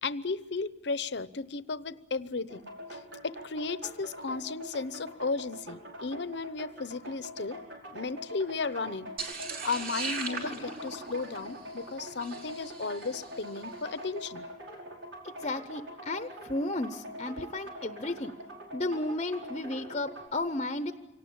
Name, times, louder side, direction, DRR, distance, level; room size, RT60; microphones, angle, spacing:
voice 1, 0.0-2.6 3.2-7.6 7.9-9.1 9.6-14.4, left 4 dB, 65° left, 15 dB, 0.8 m, -34 dB
sound 1, 2.5-20.3, equal, 85° right, 5.3 m, -44 dB
sound 2, 9.2-13.5, right 4 dB, 50° right, 3.4 m, -39 dB
voice 2, 15.2-18.3 18.7-20.9, left 2 dB, 35° left, 9 dB, 0.8 m, -33 dB
25.5 x 18.5 x 8.6 m, 0.99 s
head